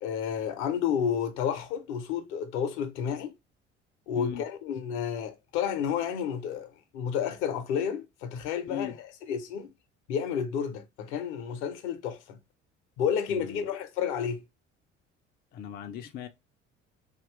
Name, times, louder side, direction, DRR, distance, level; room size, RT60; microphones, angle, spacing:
voice 1, 0.0-3.3 4.1-9.7 10.1-12.4 13.0-14.4, left 8 dB, 65° left, 0.7 m, -31 dB
voice 2, 13.3-13.7 15.5-16.3, left 9 dB, 30° left, 0.4 m, -38 dB
2.7 x 2.4 x 3.1 m
figure-of-eight pair, 55°, 36 cm